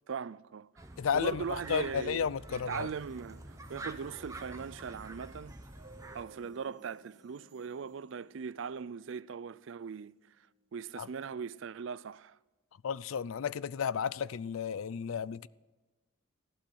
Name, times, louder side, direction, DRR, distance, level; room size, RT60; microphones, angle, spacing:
voice 1, 0.1-0.7 1.1-5.6 6.1-10.1 10.7-12.4, right 6 dB, 65° right, 0.4 m, -40 dB
sound 1, 0.8-6.2, right 2 dB, 15° right, 0.8 m, -47 dB
voice 2, 1.0-2.9 11.0-11.1 12.8-15.5, left 7 dB, 80° left, 0.4 m, -33 dB
sound 2, 1.5-10.7, right 2 dB, 35° right, 2.2 m, -59 dB
16.0 x 12.0 x 6.4 m
head